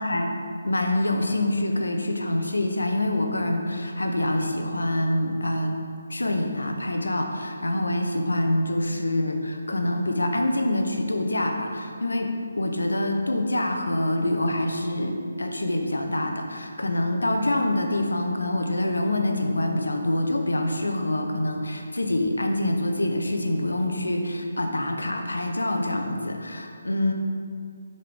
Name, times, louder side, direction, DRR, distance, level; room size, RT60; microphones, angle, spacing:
voice 1, 0.0-5.8 6.1-12.3 12.6-15.1 15.4-27.1, left 1 dB, 80° left, 4 dB, 0.7 m, -26 dB
5.7 x 5.1 x 3.4 m, 2.3 s
figure-of-eight pair, 150°, 0 cm